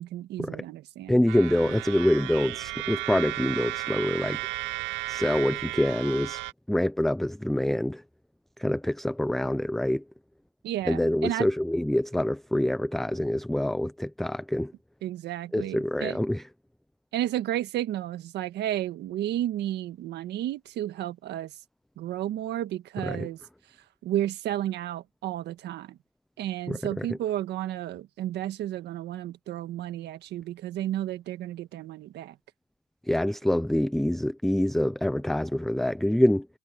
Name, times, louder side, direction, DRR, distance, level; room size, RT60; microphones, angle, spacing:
voice 1, 0.0-1.3 10.6-11.5 15.0-16.2 17.1-21.5 22.0-23.4 24.0-26.0 26.4-32.3, right 13 dB, 65° right, 1.5 m, -32 dB
voice 2, 1.1-4.4 5.1-6.4 6.7-8.0 8.6-10.0 10.9-14.7 15.5-16.4 23.0-23.3 26.7-27.1 33.1-36.5, left 1 dB, ahead, 0.5 m, -26 dB
sound 1, 1.3-6.5, right 22 dB, 80° right, 0.4 m, -34 dB
cardioid pair, 120°, 19 cm